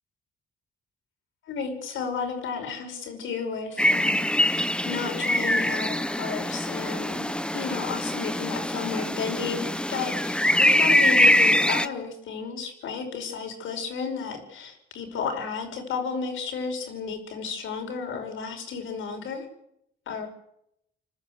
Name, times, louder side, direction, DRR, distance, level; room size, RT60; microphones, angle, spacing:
voice 1, 1.5-19.5 20.1-20.3, left 5 dB, 80° left, 5 dB, 5.4 m, -33 dB
sound 1, 3.8-11.9, left 1 dB, 5° left, 0.7 m, -23 dB
30.0 x 12.5 x 8.0 m, 0.78 s
cardioid pair, 90°, 20 cm